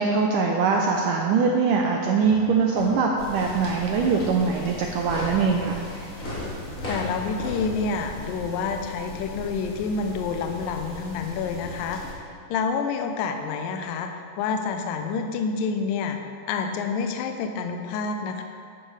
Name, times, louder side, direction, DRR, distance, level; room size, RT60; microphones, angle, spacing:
voice 1, 0.0-5.7, right 5 dB, 80° right, 1 dB, 1.9 m, -22 dB
sound 1, 2.2-7.7, left 1 dB, 35° left, 1.4 m, -36 dB
sound 2, 3.2-12.1, left 2 dB, 60° left, 3.1 m, -39 dB
voice 2, 6.9-12.2 12.5-16.2 16.5-18.4, left 5 dB, 80° left, 5 dB, 2.2 m, -28 dB
12.0 x 10.0 x 3.3 m, 2.5 s
omnidirectional pair, 4.4 m